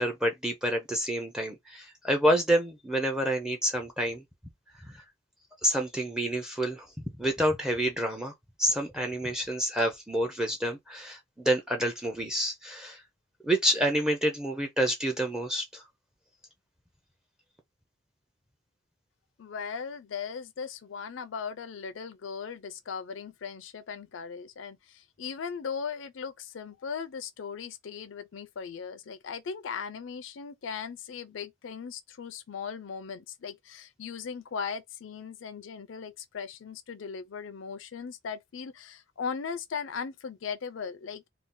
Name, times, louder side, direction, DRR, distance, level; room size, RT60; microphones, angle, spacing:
voice 1, 0.0-4.2 4.8-5.0 5.6-6.9 7.2-8.3 8.6-13.0 13.4-15.8, right 1 dB, 5° right, 0.5 m, -28 dB
voice 2, 19.4-41.2, left 6 dB, 85° left, 0.4 m, -38 dB
2.7 x 2.4 x 3.6 m
head